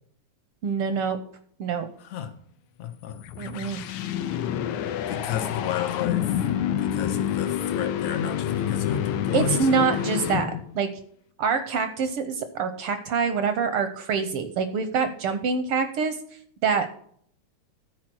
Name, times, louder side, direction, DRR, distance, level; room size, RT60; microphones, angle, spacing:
voice 1, 0.6-1.2 1.6-1.9 3.4-3.8 9.3-10.9 11.4-16.2 16.6-16.9, right 5 dB, 70° right, 9 dB, 1.3 m, -25 dB
voice 2, 2.0-2.3 2.8-3.2 5.1-6.3 6.8-10.4, left 8 dB, 70° left, 7 dB, 2.4 m, -32 dB
sound 1, 3.0-10.8, left 10 dB, 85° left, 2.2 m, -28 dB
13.0 x 4.7 x 6.1 m, 0.63 s
omnidirectional pair, 3.3 m